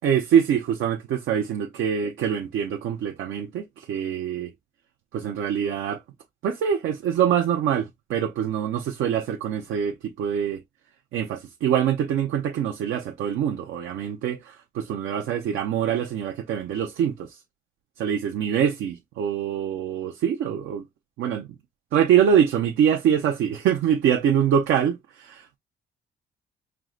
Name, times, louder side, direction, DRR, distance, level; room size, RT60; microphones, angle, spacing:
voice 1, 0.0-4.5 5.1-6.0 6.4-10.6 11.1-17.4 18.0-20.8 21.2-21.5 21.9-25.6, right 8 dB, 80° right, 0.6 m, -24 dB
4.7 x 2.1 x 3.7 m
cardioid pair, 90°, 20 cm